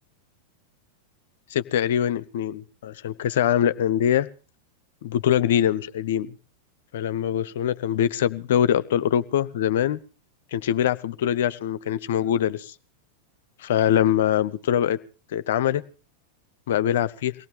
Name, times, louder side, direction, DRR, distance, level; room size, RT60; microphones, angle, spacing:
voice 1, 1.5-4.3 5.0-6.3 6.9-10.0 10.5-12.7 13.6-15.0 15.3-15.8 16.7-17.3, left 10 dB, 55° left, 15 dB, 0.8 m, -23 dB
23.5 x 18.0 x 3.4 m, 0.37 s
figure-of-eight pair, 90°, 0 cm